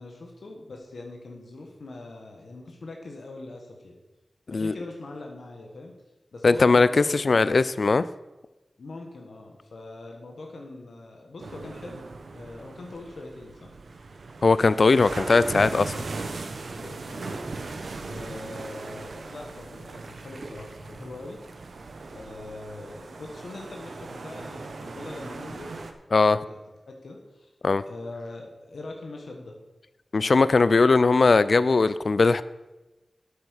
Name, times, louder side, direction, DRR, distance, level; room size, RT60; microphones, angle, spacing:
voice 1, 0.0-3.9 4.5-5.9 6.3-7.4 8.8-13.7 16.7-17.4 18.1-21.4 22.1-25.8 26.2-26.6 26.9-27.5 27.9-29.5, left 2 dB, 85° left, 1 dB, 1.4 m, -42 dB
voice 2, 6.4-8.0 14.4-16.0 26.1-26.4 27.6-27.8 30.1-32.4, left 3 dB, 65° left, 16 dB, 0.4 m, -19 dB
sound 1, 11.4-25.9, right 3 dB, 85° right, 1.0 m, -38 dB
8.6 x 8.3 x 6.4 m, 1.1 s
wide cardioid pair, 75°, 0 cm